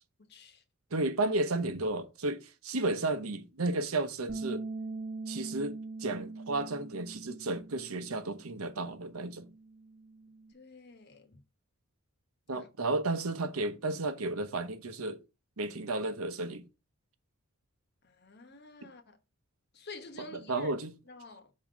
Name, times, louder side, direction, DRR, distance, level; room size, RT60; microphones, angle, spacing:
voice 1, 0.2-0.6 10.5-11.4 12.5-13.0 18.0-19.2 19.7-20.7 21.1-21.5, left 3 dB, 50° left, 1.1 m, -49 dB
voice 2, 0.9-4.6 5.3-9.5 12.5-15.2 15.6-16.6 20.5-20.9, right 2 dB, 80° right, 0.9 m, -33 dB
Bass guitar, 4.3-10.5, right 3 dB, 45° right, 1.1 m, -43 dB
5.5 x 3.9 x 6.0 m
head